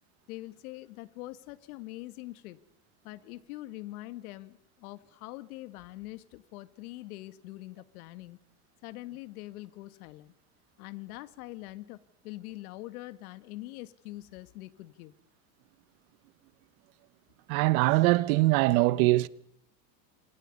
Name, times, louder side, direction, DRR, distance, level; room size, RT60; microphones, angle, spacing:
voice 1, 0.3-2.6 3.0-8.4 8.8-10.3 10.8-15.1, left 18 dB, 75° left, 2.1 m, -44 dB
voice 2, 17.5-19.3, right 20 dB, 65° right, 1.2 m, -22 dB
29.0 x 26.5 x 5.5 m
supercardioid pair, 130°, 44 cm